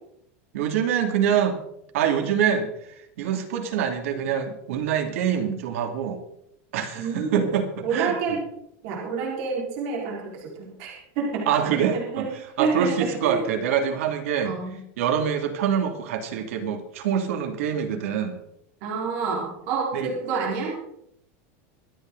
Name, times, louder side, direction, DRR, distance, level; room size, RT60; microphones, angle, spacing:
voice 1, 0.5-1.6 1.9-2.7 3.2-6.2 6.7-8.1 11.5-12.3 12.6-14.5 15.0-18.4 19.9-20.1, right 8 dB, 80° right, 6 dB, 2.5 m, -25 dB
voice 2, 6.9-7.5 7.8-8.4 8.8-12.2 12.6-13.5 14.4-14.8 18.8-20.7, right 5 dB, 55° right, -2 dB, 4.5 m, -28 dB
25.0 x 8.6 x 3.9 m, 0.74 s
supercardioid pair, 165°, 7 cm